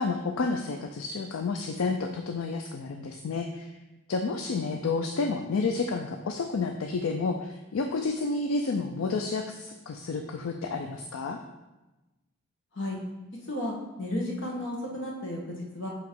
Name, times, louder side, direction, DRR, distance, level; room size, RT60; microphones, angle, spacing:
voice 1, 0.0-3.7 4.1-11.4, left 4 dB, 75° left, 5 dB, 0.4 m, -30 dB
voice 2, 13.4-15.9, left 1 dB, 60° left, -2 dB, 1.4 m, -33 dB
7.1 x 3.0 x 4.6 m, 1.1 s
head